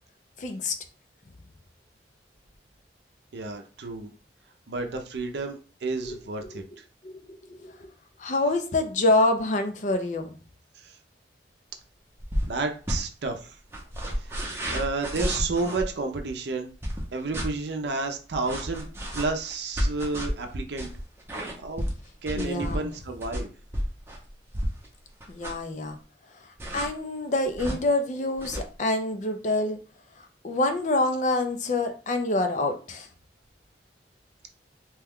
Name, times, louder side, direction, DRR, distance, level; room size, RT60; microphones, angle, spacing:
voice 1, 0.4-0.7 6.0-6.2 6.5-6.6 7.0-7.9 8.2-10.4 22.4-22.9 25.3-26.0 26.4-29.8 30.2-33.1, left 2 dB, 45° left, 7 dB, 0.4 m, -27 dB
voice 2, 3.3-4.1 4.7-6.6 10.8-11.0 12.5-13.6 14.2-16.7 17.1-18.9 19.1-20.9 21.6-21.8 22.2-23.5, right 3 dB, 70° right, 4 dB, 0.5 m, -31 dB
sound 1, 12.2-12.6 12.8-13.0 13.7-15.9 16.8-17.5 18.4-24.9 25.2-25.7 26.6-26.9 27.5-27.8 28.4-28.6, equal, 15° right, 0.7 m, -31 dB
2.9 x 2.2 x 3.5 m, 0.37 s
head